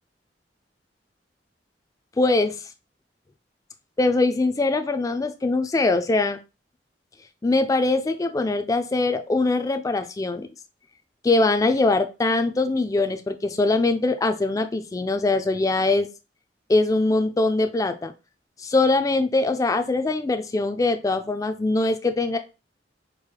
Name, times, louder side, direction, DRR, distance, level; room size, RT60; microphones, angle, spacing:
voice 1, 2.2-2.6 4.0-6.4 7.4-10.5 11.2-16.1 16.7-18.1 18.6-22.4, left 2 dB, 20° left, 8 dB, 0.3 m, -22 dB
4.6 x 3.2 x 2.2 m, 0.30 s
head